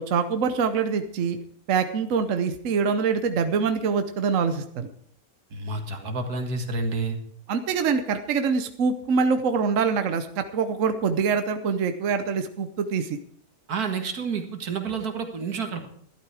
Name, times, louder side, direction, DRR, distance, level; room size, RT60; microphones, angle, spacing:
voice 1, 0.0-1.4 1.7-4.9 7.5-13.2, right 5 dB, 60° right, 9 dB, 1.2 m, -24 dB
voice 2, 5.5-7.2 13.7-15.9, right 4 dB, 85° right, 6 dB, 2.1 m, -29 dB
12.5 x 12.0 x 4.8 m, 0.62 s
omnidirectional pair, 1.6 m